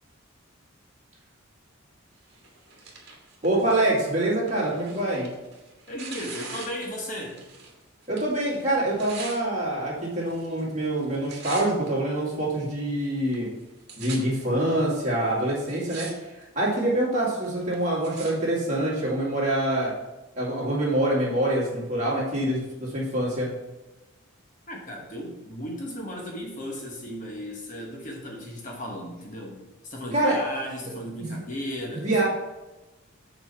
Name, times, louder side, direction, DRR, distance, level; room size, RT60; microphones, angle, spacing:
Tearing, 2.3-7.8 8.0-9.4 10.1-10.6 10.9-11.9 12.5-12.6 13.3-13.4 13.6-14.2 14.9-15.0 15.5-16.1 16.4-16.9 17.4-18.3 19.1-19.2, right 4 dB, 50° right, 1.8 m, -42 dB
voice 1, 3.4-5.3 8.1-13.5 14.0-16.1 16.6-19.9 20.4-23.5 30.1-30.4 30.9-31.3 31.9-32.2, right 1 dB, 35° right, -6 dB, 2.3 m, -25 dB
voice 2, 5.9-7.4 24.7-32.2, equal, 35° left, -1 dB, 1.1 m, -35 dB
7.7 x 4.2 x 5.7 m, 1.1 s
head